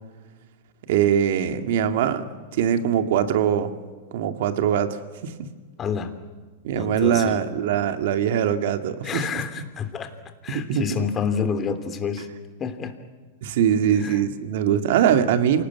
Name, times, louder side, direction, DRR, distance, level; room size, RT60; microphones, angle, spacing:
voice 1, 0.9-3.7 4.1-5.3 6.6-9.4 10.5-11.1 13.4-15.6, right 9 dB, 65° right, 8 dB, 2.3 m, -22 dB
voice 2, 5.8-6.1 6.7-7.4 9.0-10.1 10.4-12.3 12.6-12.9 14.0-14.2, left 6 dB, 25° left, 8 dB, 3.0 m, -28 dB
27.5 x 19.0 x 9.6 m, 1.4 s
hypercardioid pair, 120°, 0 cm